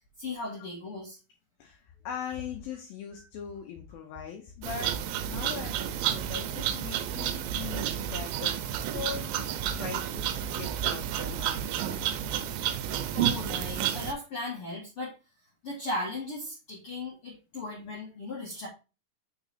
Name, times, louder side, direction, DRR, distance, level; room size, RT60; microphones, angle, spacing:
voice 1, 0.2-1.2 13.1-15.1 15.6-18.7, left 2 dB, 50° left, -4 dB, 1.7 m, -37 dB
voice 2, 1.6-4.9 5.2-8.6 8.9-11.6 11.9-12.2, left 8 dB, 75° left, 2 dB, 2.3 m, -41 dB
sound 1, 4.6-14.1, right 10 dB, 80° right, 2.2 m, -31 dB
sound 2, 7.1-13.7, right 1 dB, 15° left, 2.2 m, -47 dB
6.1 x 3.8 x 4.1 m, 0.31 s
omnidirectional pair, 4.8 m